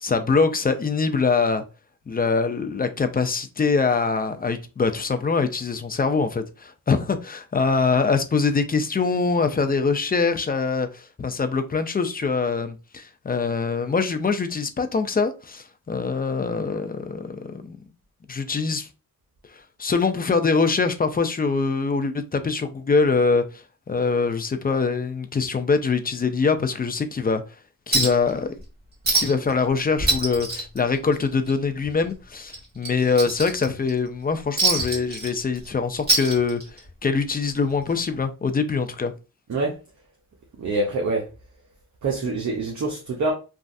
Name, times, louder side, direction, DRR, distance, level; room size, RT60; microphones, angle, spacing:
voice 1, 0.0-1.6 2.1-17.8 18.3-18.9 19.5-27.4 27.9-28.6 29.1-36.6 37.0-39.1, left 4 dB, 25° left, 0.4 m, -23 dB
Chink clink, 27.9-28.3 28.6-28.7 29.0-29.5 29.8-31.5 31.8-32.0 32.5-33.9 34.6-35.7 36.0-36.9 38.0-38.1, right 2 dB, 25° right, 1.5 m, -24 dB
voice 2, 40.6-41.3 42.0-43.3, right 3 dB, 50° right, 0.7 m, -25 dB
3.1 x 2.3 x 2.6 m
cardioid pair, 85°, 35 cm